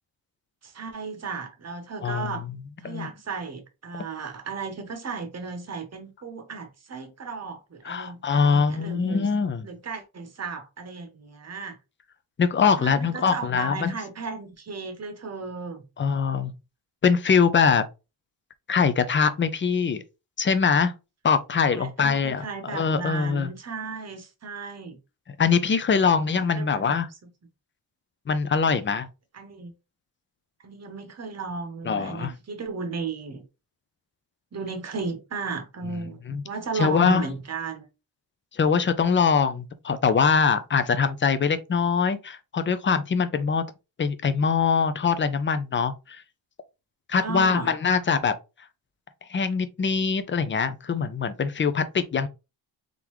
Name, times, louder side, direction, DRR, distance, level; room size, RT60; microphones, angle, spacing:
voice 1, 0.6-2.5 2.8-9.3 9.6-11.8 12.8-15.8 21.7-25.0 26.1-27.0 29.3-29.7 30.6-33.5 34.5-37.9 47.2-47.8, right 4 dB, 35° right, 0.9 m, -35 dB
voice 2, 2.0-2.3 2.8-3.1 7.8-9.7 12.4-14.0 16.0-16.5 17.0-17.8 18.7-20.0 20.4-20.9 21.2-22.5 22.7-23.5 25.4-27.1 28.3-29.1 31.9-32.3 36.3-36.4 36.7-37.3 38.5-43.6 44.0-46.2 47.1-48.3 49.3-52.3, left 5 dB, 30° left, 0.4 m, -23 dB
3.7 x 3.4 x 3.0 m
wide cardioid pair, 155°, 46 cm